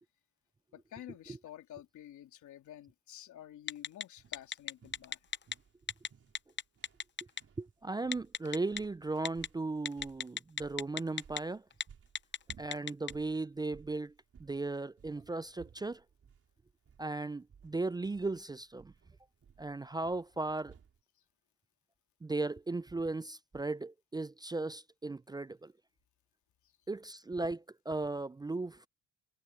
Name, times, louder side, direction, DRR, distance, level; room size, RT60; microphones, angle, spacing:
voice 1, 0.7-5.2, left 12 dB, 75° left, 3.5 m, -50 dB
Telephone, 3.7-4.0 4.3-5.5 5.9-6.1 6.3-7.4 8.1-8.8 9.3-9.5 9.9-11.4 11.7-11.8 12.2-13.1, left 8 dB, 40° left, 0.8 m, -35 dB
sound 1, 4.2-21.0, right 7 dB, 50° right, 4.5 m, -60 dB
voice 2, 7.6-11.6 12.6-14.1 14.4-16.0 17.0-18.9 19.6-20.7 22.2-25.7 26.9-28.9, right 3 dB, 15° right, 0.4 m, -36 dB
cardioid pair, 90°, 30 cm